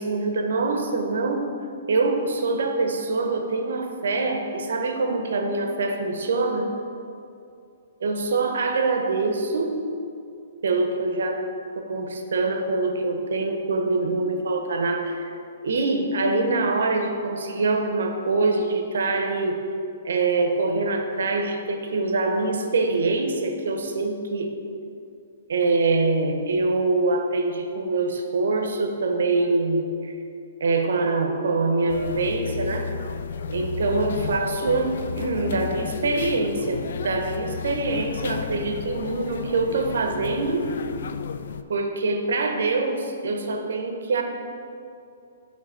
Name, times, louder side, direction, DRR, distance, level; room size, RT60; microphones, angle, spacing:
voice 1, 0.0-1.5 1.9-6.7 8.0-9.8 10.6-11.4 11.8-15.3 15.6-19.6 20.0-24.5 25.5-30.2 30.6-32.9 33.5-40.6 41.7-44.2, right 3 dB, 65° right, 5 dB, 0.7 m, -24 dB
sound 1, 31.9-41.6, left 6 dB, 55° left, 0.3 m, -33 dB
9.4 x 3.2 x 5.5 m, 2.5 s
hypercardioid pair, 180°, 0 cm